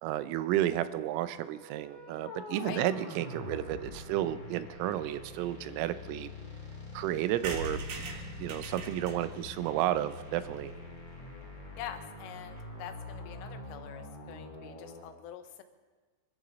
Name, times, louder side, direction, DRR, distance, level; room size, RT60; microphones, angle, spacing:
voice 1, 0.0-6.3 6.9-7.8 8.4-10.7, right 13 dB, 90° right, 12 dB, 3.3 m, -32 dB
sound 1, 1.2-15.1, left 2 dB, 30° left, 1.8 m, -45 dB
sound 2, 7.4-11.1 11.6-11.7 11.8-11.9 12.2-12.3 12.5-12.7, right 2 dB, 55° right, 3.0 m, -42 dB
voice 2, 11.8-15.6, left 10 dB, 85° left, 8 dB, 3.6 m, -45 dB
26.0 x 13.5 x 4.1 m, 1.3 s
omnidirectional pair, 5.7 m